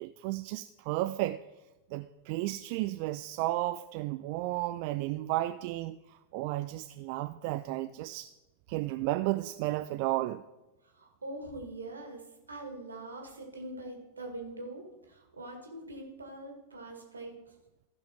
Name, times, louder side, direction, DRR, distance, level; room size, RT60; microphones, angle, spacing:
voice 1, 0.0-1.4 1.9-8.3 8.7-10.4, right 17 dB, 45° right, 0.3 m, -33 dB
voice 2, 10.9-12.2 12.5-17.5, right 2 dB, 75° right, 1.9 m, -43 dB
15.0 x 5.3 x 4.3 m
figure-of-eight pair, 90°, 0 cm